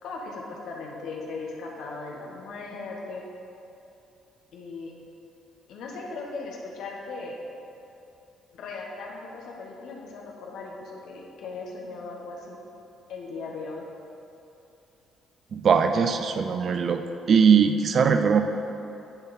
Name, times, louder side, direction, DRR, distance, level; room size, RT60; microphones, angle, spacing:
voice 1, 0.0-3.2 4.5-4.9 5.7-7.4 8.5-12.6 13.1-13.8, left 3 dB, 70° left, -1 dB, 1.1 m, -38 dB
voice 2, 15.5-17.0 17.3-18.4, right 6 dB, 55° right, 8 dB, 0.5 m, -20 dB
10.5 x 4.1 x 4.1 m, 2.8 s
supercardioid pair, 60°, 0 cm